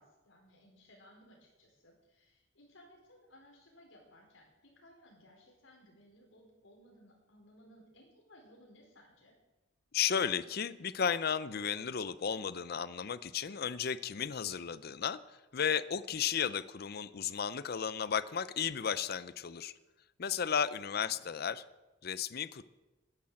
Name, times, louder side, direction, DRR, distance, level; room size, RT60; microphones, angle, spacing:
voice 1, 0.0-9.3 20.9-21.3, equal, 90° left, 0 dB, 4.5 m, -60 dB
voice 2, 9.9-15.2 15.5-19.7 20.2-21.6 22.0-22.6, left 7 dB, 55° left, 16 dB, 0.6 m, -34 dB
11.5 x 10.5 x 7.6 m, 1.1 s
head